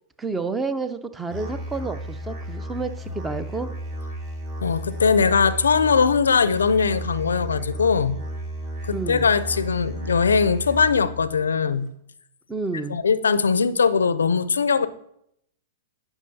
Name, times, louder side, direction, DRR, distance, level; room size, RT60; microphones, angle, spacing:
voice 1, 0.2-3.7 8.9-9.3 12.5-13.0, right 4 dB, 10° right, 12 dB, 0.5 m, -30 dB
Musical instrument, 1.3-11.3, right 1 dB, 35° right, 1.8 m, -33 dB
voice 2, 4.6-8.2 8.8-11.9 12.9-14.9, left 5 dB, 85° left, 15 dB, 0.4 m, -20 dB
12.0 x 5.8 x 2.7 m, 0.76 s
hypercardioid pair, 110°, 0 cm